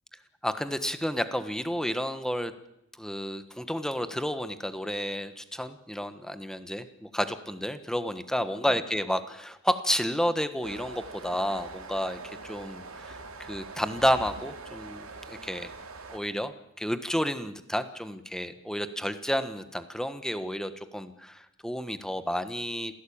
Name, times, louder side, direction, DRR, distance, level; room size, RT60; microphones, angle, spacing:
voice 1, 0.4-2.5 3.0-15.7 16.1-22.9, equal, 5° left, 10 dB, 1.4 m, -31 dB
sound 1, 10.6-16.2, right 3 dB, 70° right, 3.0 m, -43 dB
26.5 x 17.0 x 8.8 m, 0.87 s
head